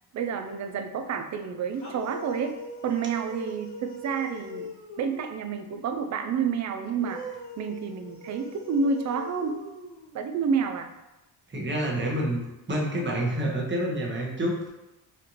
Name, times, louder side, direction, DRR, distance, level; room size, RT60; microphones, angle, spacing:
voice 1, 0.1-2.6 2.8-9.6 10.1-10.9, right 5 dB, 40° right, 7 dB, 0.4 m, -29 dB
sound 1, 1.7-5.5 6.8-10.4, right 1 dB, 90° left, 1.5 m, -41 dB
voice 2, 11.5-12.4 12.7-14.7, right 1 dB, 25° right, -2 dB, 1.0 m, -28 dB
4.2 x 2.5 x 3.0 m, 0.99 s
cardioid pair, 85°, 46 cm